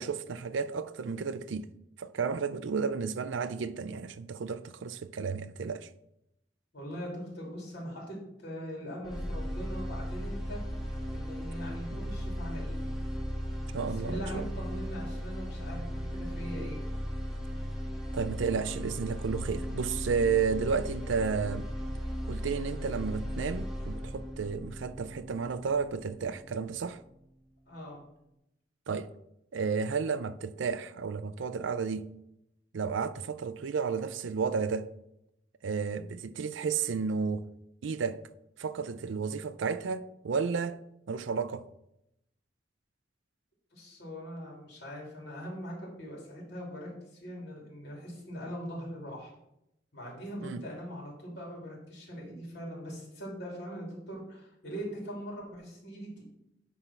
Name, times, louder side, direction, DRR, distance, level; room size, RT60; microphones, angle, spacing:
voice 1, 0.0-1.7 2.0-5.9 11.9-12.0 13.7-14.5 18.1-21.7 22.3-27.0 28.9-29.1 29.5-32.1 32.7-34.9 35.6-37.5 37.8-38.2 38.6-41.6 50.4-50.6, right 5 dB, 80° right, 0.4 m, -32 dB
voice 2, 6.7-10.6 11.1-12.8 13.8-16.8 27.7-28.0 43.7-49.3 49.9-56.2, equal, 65° left, 3.1 m, -41 dB
sound 1, 9.0-27.1, equal, ahead, 1.3 m, -37 dB
9.8 x 3.4 x 5.8 m
head